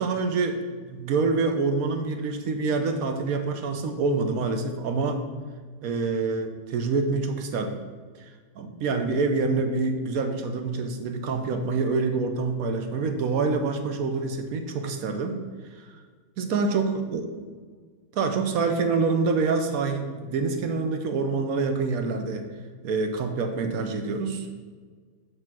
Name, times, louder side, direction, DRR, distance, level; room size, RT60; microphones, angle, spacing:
voice 1, 0.0-5.2 5.8-7.8 8.6-15.4 15.8-15.9 16.4-17.2 18.1-22.4 22.8-24.5, right 4 dB, 65° right, 6 dB, 1.0 m, -26 dB
7.9 x 3.3 x 6.0 m, 1.5 s
omnidirectional pair, 1.9 m